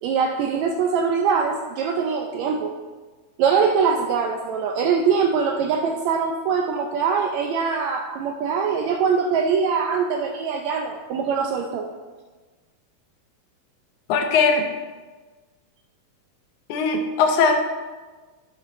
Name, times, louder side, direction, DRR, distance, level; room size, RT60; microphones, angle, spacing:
voice 1, 0.0-2.7 3.4-11.9, right 6 dB, 85° right, 3 dB, 1.6 m, -23 dB
voice 2, 14.1-14.7 16.7-17.6, left 4 dB, 70° left, 4 dB, 2.2 m, -19 dB
11.5 x 7.5 x 3.1 m, 1.3 s
omnidirectional pair, 3.8 m